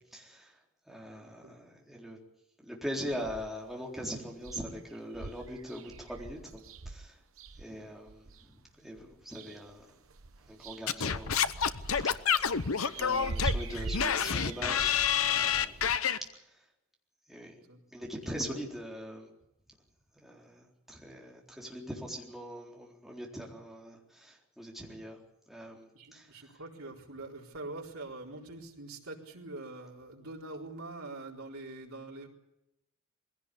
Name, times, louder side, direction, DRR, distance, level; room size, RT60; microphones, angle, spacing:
voice 1, 0.1-0.5 0.9-2.2 2.6-7.1 7.6-8.3 8.8-9.9 10.5-11.3 12.1-12.6 13.0-15.8 17.3-17.5 17.9-19.3 20.2-25.2 25.5-26.3, equal, ahead, -2 dB, 4.0 m, -41 dB
voice 2, 1.2-1.6 13.0-13.2 17.7-17.8 18.3-18.6 25.9-32.3, right 2 dB, 85° right, -1 dB, 4.3 m, -44 dB
sound 1, 3.1-3.7 4.1-4.2 4.4-8.4 9.0-9.8 10.1-16.0, right 2 dB, 70° right, 1.0 m, -42 dB
Singing / Scratching (performance technique), 10.9-16.2, left 7 dB, 85° left, 1.0 m, -28 dB
22.0 x 17.0 x 8.5 m, 0.87 s
head